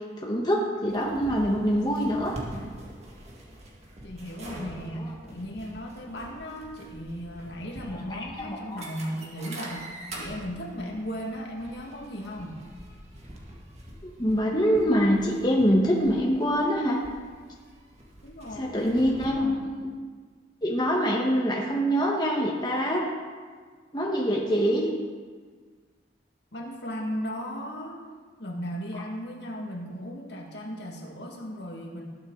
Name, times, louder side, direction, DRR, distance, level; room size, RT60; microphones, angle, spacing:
voice 1, 0.2-2.3 5.0-5.1 7.9-8.8 14.2-17.0 18.6-19.9 20.6-23.1 23.9-24.9, equal, 20° left, -3 dB, 1.4 m, -25 dB
sound 1, 0.9-19.3, right 1 dB, 35° right, 2.0 m, -44 dB
voice 2, 4.0-12.6 18.2-19.7 26.5-28.0 28.4-32.0, equal, 60° left, -1 dB, 2.1 m, -36 dB
19.0 x 8.8 x 4.0 m, 1.6 s
head